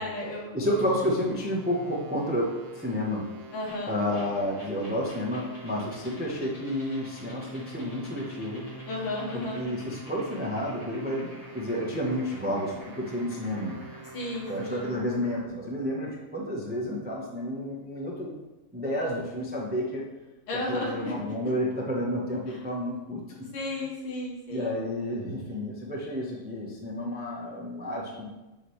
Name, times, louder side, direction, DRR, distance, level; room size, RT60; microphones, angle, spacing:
voice 1, 0.0-0.6 3.5-3.9 8.9-9.7 14.1-14.9 20.5-21.1 22.5-22.6 23.5-24.8, left 2 dB, 85° left, -3 dB, 2.5 m, -33 dB
voice 2, 0.5-3.2 3.8-8.6 9.5-13.8 14.4-18.3 18.7-20.1 20.7-23.2 24.5-28.3, equal, 15° right, -3 dB, 0.3 m, -30 dB
sound 1, 0.6-15.0, right 3 dB, 80° right, 1.7 m, -46 dB
sound 2, 3.7-15.5, left 1 dB, 15° left, 1.8 m, -50 dB
7.6 x 5.9 x 3.3 m, 1.1 s
omnidirectional pair, 2.4 m